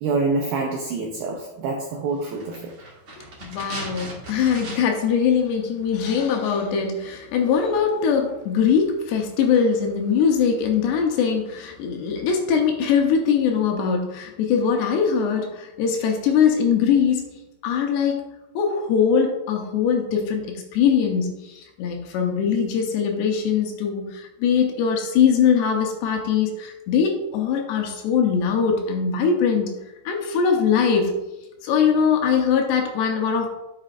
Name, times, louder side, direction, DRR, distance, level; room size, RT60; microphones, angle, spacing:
voice 1, 0.0-2.8, right 3 dB, 85° right, 0 dB, 2.1 m, -26 dB
sound 1, 2.3-5.1 5.4-5.5, right 2 dB, 55° right, 1.3 m, -38 dB
voice 2, 3.4-17.3 17.6-18.2 18.6-29.8 30.1-31.1 31.6-33.5, left 6 dB, 75° left, 2 dB, 2.9 m, -21 dB
11.0 x 7.0 x 2.5 m, 0.95 s
omnidirectional pair, 5.2 m